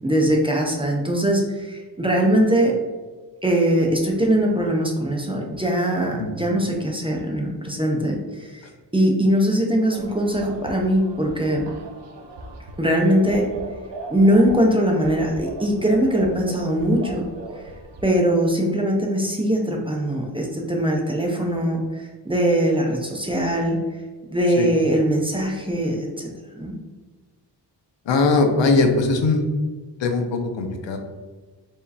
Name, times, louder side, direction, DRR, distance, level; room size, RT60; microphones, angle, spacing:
voice 1, 0.0-2.7 3.4-11.7 12.8-13.5 14.1-17.3 18.0-23.8 24.3-26.8, equal, 15° right, -1 dB, 0.4 m, -21 dB
sound 1, 9.9-18.1, right 2 dB, 75° right, 0.7 m, -38 dB
voice 2, 28.1-29.4 30.0-31.0, left 3 dB, 90° left, 5 dB, 0.7 m, -20 dB
4.6 x 3.0 x 2.7 m, 1.3 s
wide cardioid pair, 175°, 43 cm